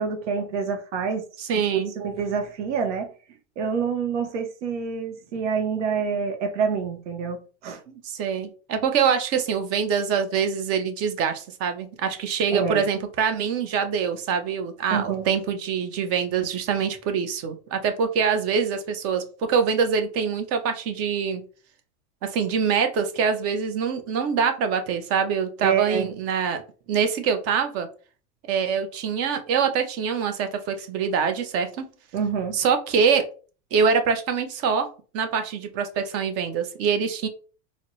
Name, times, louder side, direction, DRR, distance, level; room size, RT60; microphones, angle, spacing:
voice 1, 0.0-1.2 1.7-3.1 3.6-7.8 12.5-12.8 14.9-15.2 25.6-26.1 32.1-32.6, right 6 dB, 80° right, 0.9 m, -27 dB
voice 2, 1.4-1.9 7.9-21.4 22.2-26.6 26.9-27.9 28.5-31.8 32.5-33.2 33.7-34.9 35.1-37.3, right 6 dB, 40° right, 0.7 m, -24 dB
4.0 x 2.0 x 3.0 m
supercardioid pair, 115°, 35 cm